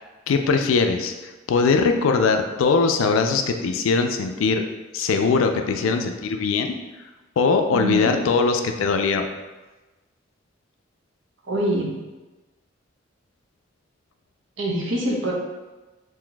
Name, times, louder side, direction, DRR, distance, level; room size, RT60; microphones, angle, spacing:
voice 1, 0.3-1.1 1.5-4.6 4.9-6.8 7.4-9.3, left 4 dB, 90° left, 6 dB, 0.3 m, -21 dB
voice 2, 7.7-8.2 11.4-11.9 14.6-15.3, right 1 dB, 70° right, -2 dB, 0.6 m, -24 dB
2.6 x 2.2 x 3.8 m, 1.1 s
head